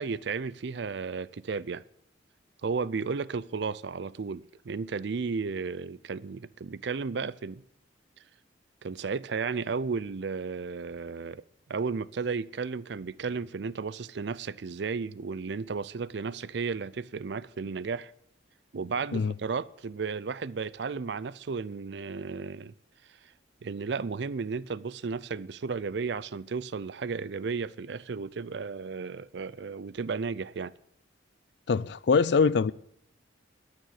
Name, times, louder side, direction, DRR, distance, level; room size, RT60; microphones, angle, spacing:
voice 1, 0.0-1.8 2.6-7.6 8.8-11.4 11.7-18.1 18.7-22.7 23.6-30.7, right 5 dB, 65° right, 0.5 m, -34 dB
voice 2, 31.7-32.7, left 5 dB, 60° left, 0.4 m, -23 dB
13.0 x 6.6 x 9.0 m
head